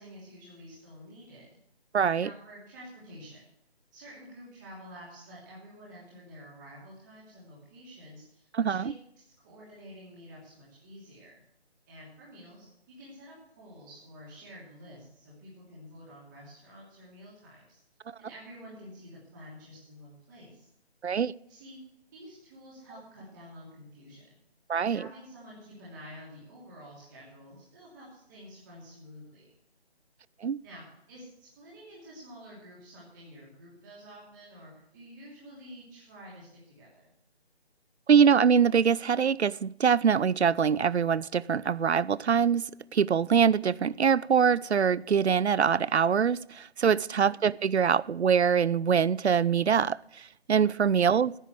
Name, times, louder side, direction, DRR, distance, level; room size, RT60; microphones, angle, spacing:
voice 1, 0.0-1.5 2.2-3.4 3.9-11.4 11.9-17.8 18.2-20.7 21.5-21.8 22.1-24.4 24.8-29.4 30.6-37.1 47.0-47.4 50.9-51.1, equal, 20° right, -6 dB, 2.7 m, -49 dB
voice 2, 1.9-2.3 8.5-8.9 21.0-21.3 24.7-25.0 30.4-30.6 38.1-51.4, right 7 dB, 80° right, 21 dB, 0.5 m, -24 dB
10.0 x 8.6 x 7.9 m, 0.75 s
figure-of-eight pair, 155°, 33 cm